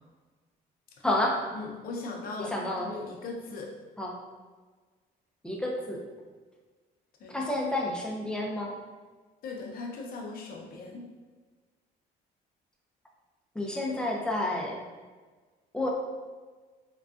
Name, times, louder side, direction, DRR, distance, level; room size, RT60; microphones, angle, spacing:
voice 1, 1.0-1.4 2.5-2.9 4.0-4.1 5.4-6.0 7.3-8.7 13.5-14.8 15.7-15.9, left 1 dB, 5° left, -1 dB, 0.5 m, -30 dB
voice 2, 1.5-3.7 7.2-7.5 9.4-11.1, left 3 dB, 60° left, 0 dB, 0.6 m, -39 dB
3.6 x 2.3 x 2.4 m, 1.4 s
cardioid pair, 110°, 17 cm